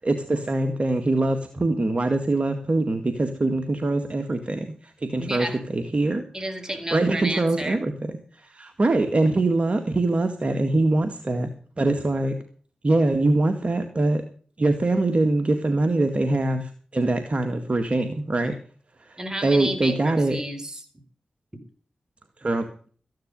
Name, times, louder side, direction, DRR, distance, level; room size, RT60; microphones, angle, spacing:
voice 1, 0.0-6.2 6.9-7.9 8.4-11.5 11.8-12.4 12.8-14.2 14.6-18.5 19.1-20.4 22.4-22.9, right 2 dB, 45° right, 6 dB, 1.9 m, -23 dB
voice 2, 5.2-5.6 6.3-7.8 19.2-20.9, right 1 dB, 20° right, 7 dB, 4.4 m, -31 dB
14.5 x 10.5 x 5.3 m, 0.44 s
cardioid pair, 45°, 3 cm